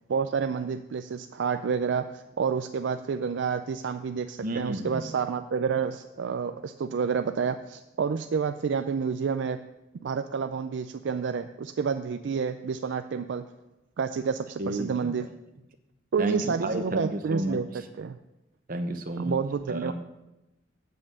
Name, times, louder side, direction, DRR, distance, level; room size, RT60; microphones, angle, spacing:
voice 1, 0.1-9.6 10.0-13.4 14.0-15.3 16.1-17.7 18.0-18.2 19.2-19.9, right 6 dB, 65° right, 9 dB, 0.4 m, -29 dB
voice 2, 4.4-5.1 14.6-15.2 16.2-17.6 18.7-19.4 19.7-19.9, right 1 dB, 45° right, 6 dB, 0.8 m, -31 dB
7.5 x 7.5 x 6.6 m, 0.98 s
head